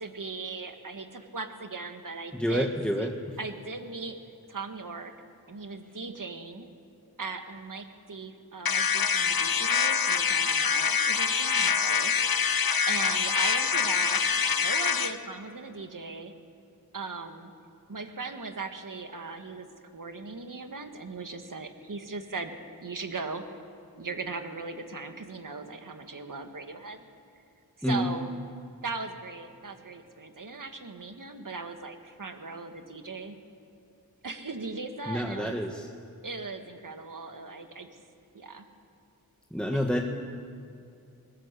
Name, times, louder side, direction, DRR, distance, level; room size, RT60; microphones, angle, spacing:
voice 1, 0.0-2.7 3.0-3.1 3.4-4.2 4.5-5.1 5.5-6.7 7.2-12.1 12.9-16.3 16.9-17.5 17.9-22.5 22.8-23.4 24.0-27.0 27.8-28.3 28.8-33.4 34.2-35.6 36.2-38.0 38.3-38.7 39.7-39.9, right 3 dB, 55° right, 6 dB, 2.0 m, -38 dB
voice 2, 2.3-3.1 12.0-12.1 27.8-28.1 35.1-35.9 39.5-40.0, equal, 5° left, 2 dB, 1.7 m, -28 dB
sound 1, 8.6-15.1, left 6 dB, 65° left, 1.1 m, -25 dB
20.5 x 19.0 x 8.5 m, 2.6 s
wide cardioid pair, 60°, 38 cm